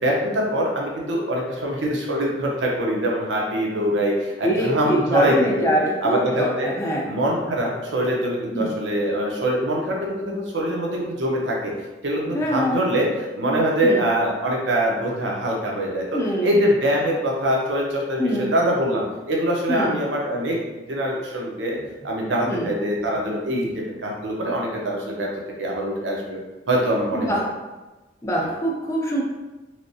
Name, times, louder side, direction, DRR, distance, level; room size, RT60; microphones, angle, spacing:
voice 1, 0.0-5.7 6.0-6.7 7.1-11.7 12.0-20.6 20.9-21.8 22.0-25.3 25.6-26.4 26.7-27.4, right 1 dB, 75° right, -2 dB, 0.7 m, -23 dB
voice 2, 4.4-7.0 8.5-8.7 12.3-12.8 13.5-14.0 16.1-16.6 18.2-18.5 19.7-20.0 22.5-22.7 27.1-27.4 28.2-29.2, equal, 15° left, -4 dB, 0.6 m, -24 dB
3.6 x 3.4 x 2.7 m, 1.1 s
head